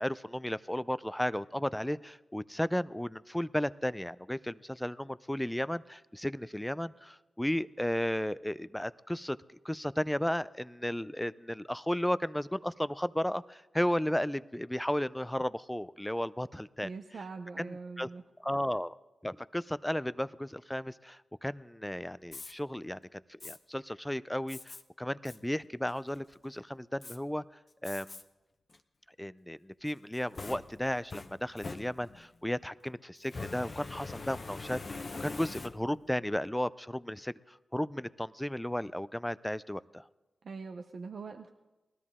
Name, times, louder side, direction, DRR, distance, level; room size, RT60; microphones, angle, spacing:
voice 1, 0.0-9.4 9.6-16.9 17.6-18.1 18.4-18.9 19.2-27.4 27.8-28.2 29.2-40.0, left 1 dB, 10° left, 16 dB, 0.4 m, -34 dB
voice 2, 16.8-18.2 40.4-41.5, right 4 dB, 75° right, 5 dB, 0.7 m, -42 dB
Fire, 22.3-22.5 23.4-23.6 24.5-24.8 25.3-25.4 25.9-26.3 27.0-27.2 27.8-28.2 28.7-28.8 29.9-32.3 33.2-36.1, left 3 dB, 55° left, 0.9 m, -43 dB
19.0 x 13.0 x 3.7 m, 1.1 s
cardioid pair, 45°, 0 cm